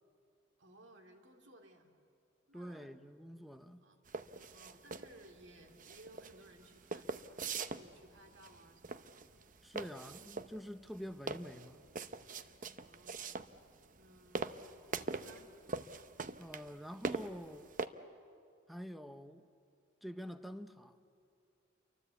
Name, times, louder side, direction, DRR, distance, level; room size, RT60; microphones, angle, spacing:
voice 1, 0.6-1.9 2.5-2.9 3.8-4.0 4.5-9.1 12.8-13.6 13.9-14.5 14.9-15.5, right 1 dB, 65° right, 2.7 m, -60 dB
voice 2, 2.5-3.9 9.6-11.9 16.4-17.7 18.7-19.5 20.0-21.0, equal, ahead, 0.8 m, -47 dB
sound 1, 4.1-17.9, right 4 dB, 40° right, 0.8 m, -42 dB
29.5 x 24.0 x 8.3 m
head